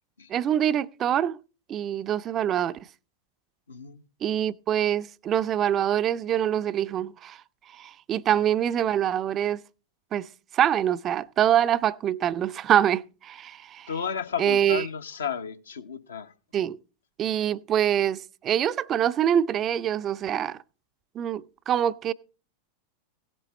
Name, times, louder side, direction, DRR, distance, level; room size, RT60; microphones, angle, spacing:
voice 1, 0.3-1.4 1.7-2.9 4.2-7.4 7.7-9.6 10.1-10.3 10.5-13.9 14.4-14.9 16.5-16.8 17.2-20.6 21.1-22.1, right 10 dB, 30° right, 0.5 m, -25 dB
voice 2, 3.7-4.0 13.9-16.3, left 7 dB, 70° left, 1.1 m, -33 dB
17.0 x 7.6 x 4.3 m
figure-of-eight pair, 90°, 0 cm